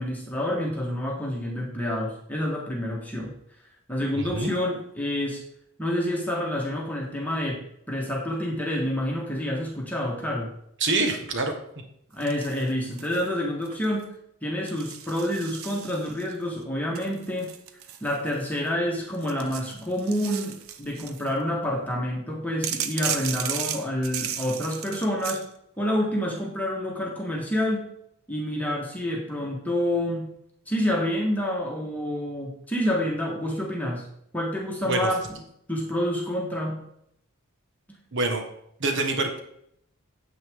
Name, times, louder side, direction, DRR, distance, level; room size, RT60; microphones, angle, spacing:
voice 1, 0.0-3.3 3.9-5.4 5.8-10.5 12.1-14.1 14.4-17.5 18.0-25.4 25.8-27.9 28.3-30.3 30.7-34.1 34.3-35.2 35.7-36.8, left 1 dB, 5° left, -2 dB, 1.5 m, -28 dB
voice 2, 4.1-4.5 10.8-11.5 34.8-35.1 38.1-38.4 38.8-39.4, right 2 dB, 55° right, 4 dB, 1.5 m, -25 dB
sound 1, 12.2-13.3 13.6-14.0 14.7-16.3 16.9-18.7 19.1-21.3 22.6-25.4, right 9 dB, 70° right, 0.7 m, -35 dB
9.3 x 8.0 x 3.7 m, 0.73 s
head